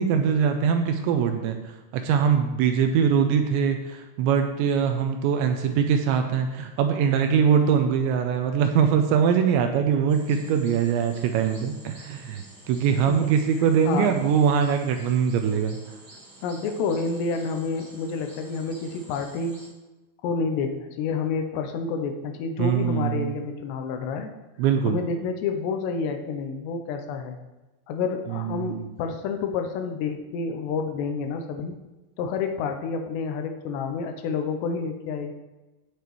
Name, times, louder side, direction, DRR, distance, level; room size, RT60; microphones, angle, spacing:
voice 1, 0.0-15.8 22.6-23.3 24.6-25.0 28.3-28.9, right 7 dB, 80° right, 6 dB, 2.7 m, -22 dB
sound 1, 10.1-19.7, right 1 dB, 60° right, 1.0 m, -49 dB
voice 2, 12.9-13.3 13.6-14.2 16.4-19.6 20.2-24.3 24.8-27.4 27.9-31.8 32.2-35.3, left 5 dB, 75° left, 5 dB, 2.7 m, -29 dB
16.5 x 6.7 x 3.1 m, 1.1 s
omnidirectional pair, 5.5 m